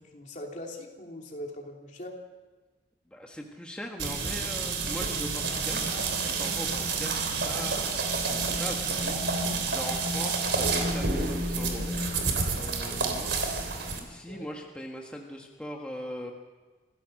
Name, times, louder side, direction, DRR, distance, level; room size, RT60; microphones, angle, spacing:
voice 1, 0.0-2.2 6.8-6.9 10.1-10.2 12.9-13.1 14.3-14.5, left 1 dB, 45° left, 1 dB, 3.0 m, -42 dB
voice 2, 3.1-5.9 6.2-12.0 12.5-13.3 14.0-16.3, equal, 5° left, 0 dB, 1.6 m, -40 dB
sound 1, 4.0-14.0, right 3 dB, 85° right, 3.4 m, -29 dB
26.5 x 16.0 x 6.6 m, 1.3 s
head